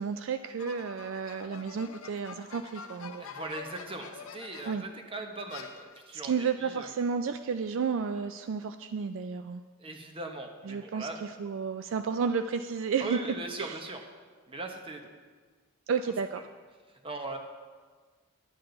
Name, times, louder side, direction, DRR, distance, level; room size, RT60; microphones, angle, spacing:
voice 1, 0.0-3.2 4.7-4.8 6.2-9.6 10.7-11.1 11.4-13.2 13.6-13.8 15.9-16.4, right 6 dB, 65° right, 9 dB, 0.3 m, -32 dB
sound 1, 0.6-5.0 5.5-6.3, left 6 dB, 80° left, 0.6 m, -46 dB
voice 2, 3.2-6.9 9.8-11.2 13.0-14.0 14.5-15.0 17.0-17.4, right 2 dB, 25° right, 3 dB, 1.0 m, -39 dB
11.0 x 8.7 x 3.9 m, 1.5 s
head